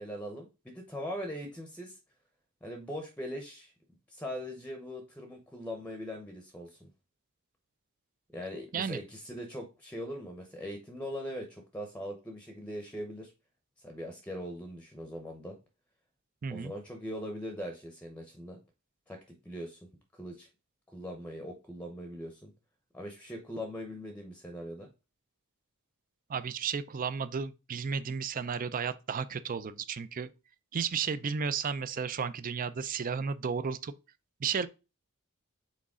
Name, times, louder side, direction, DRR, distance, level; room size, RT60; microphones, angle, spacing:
voice 1, 0.0-2.0 2.6-3.7 4.1-6.9 8.3-13.3 13.8-15.6 16.5-18.6 19.1-19.8 20.1-20.5 20.9-22.5 22.9-24.9, equal, 5° left, 0.7 m, -41 dB
voice 2, 16.4-16.7 26.3-30.3 30.7-33.9 34.4-34.7, right 6 dB, 40° right, 0.4 m, -33 dB
6.2 x 4.1 x 3.6 m
head